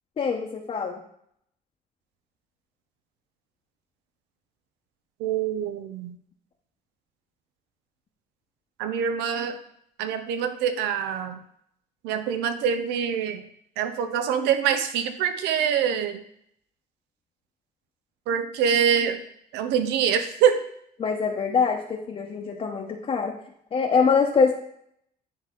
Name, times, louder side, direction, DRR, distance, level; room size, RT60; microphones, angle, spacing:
voice 1, 0.2-1.0 21.0-23.3 23.7-24.5, left 5 dB, 35° left, 0 dB, 0.8 m, -24 dB
voice 2, 5.2-6.2 8.8-9.6 10.0-11.4 12.0-13.4 13.8-16.2 18.3-19.2 19.5-20.6, right 8 dB, 90° right, 10 dB, 0.7 m, -25 dB
9.9 x 3.5 x 3.7 m, 0.71 s
cardioid pair, 110°, 17 cm